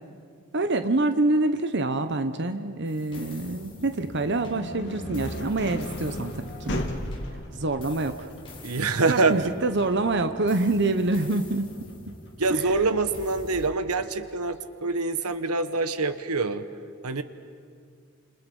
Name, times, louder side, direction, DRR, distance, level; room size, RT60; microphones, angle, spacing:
voice 1, 0.5-6.9 7.6-8.3 9.1-11.7 12.5-12.6, right 2 dB, 50° right, 8 dB, 1.0 m, -26 dB
sound 1, 2.9-13.7, left 1 dB, 25° left, 3.9 m, -46 dB
sound 2, 3.8-13.6, left 1 dB, 50° left, 2.5 m, -37 dB
voice 2, 8.6-9.5 12.4-16.6 17.0-17.2, right 3 dB, 80° right, 11 dB, 1.2 m, -25 dB
30.0 x 28.0 x 5.5 m, 2.2 s
head